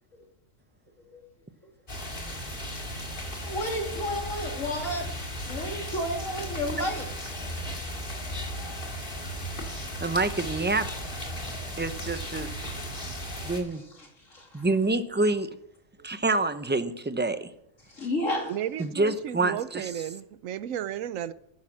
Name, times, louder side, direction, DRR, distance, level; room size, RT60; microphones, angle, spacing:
sound 1, 1.9-13.6, equal, 40° left, 2.3 m, -36 dB
voice 1, 3.4-5.1 5.5-7.1 13.2-14.7 17.9-18.5, left 1 dB, 75° left, 0 dB, 3.2 m, -32 dB
voice 2, 10.0-10.9 11.8-12.7 13.4-13.8 14.5-15.5 16.0-17.5 18.8-19.9, right 2 dB, 15° right, 10 dB, 0.5 m, -27 dB
voice 3, 18.4-21.3, right 10 dB, 90° right, 14 dB, 1.1 m, -33 dB
10.5 x 10.5 x 7.5 m, 0.78 s
omnidirectional pair, 1.3 m